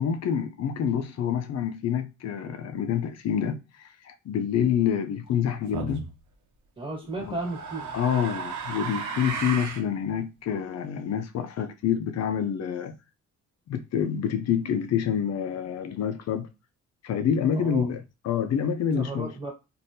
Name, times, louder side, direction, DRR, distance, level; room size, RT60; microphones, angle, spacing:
voice 1, 0.0-6.1 7.2-7.4 7.9-13.0 13.7-16.5 17.0-19.3, left 8 dB, 60° left, 0.6 m, -27 dB
sound 1, 5.7-6.1 7.1-9.9, right 5 dB, 70° right, 0.9 m, -34 dB
voice 2, 6.8-7.9 17.5-17.9 18.9-19.5, right 3 dB, 15° right, 1.5 m, -34 dB
3.4 x 2.5 x 2.7 m
cardioid pair, 90°, 30 cm